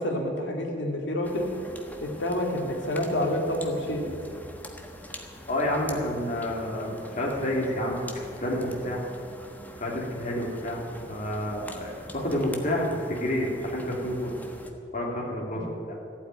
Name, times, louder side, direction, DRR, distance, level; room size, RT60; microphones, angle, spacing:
voice 1, 0.0-1.5 2.0-4.1 15.5-15.6, left 1 dB, 70° left, 0 dB, 2.6 m, -28 dB
sound 1, 1.2-14.7, left 1 dB, 10° left, 1.3 m, -44 dB
voice 2, 5.5-9.1 9.8-10.8 11.1-14.4 14.9-16.0, left 1 dB, 40° left, -3 dB, 2.9 m, -29 dB
15.0 x 8.4 x 9.3 m, 2.6 s
head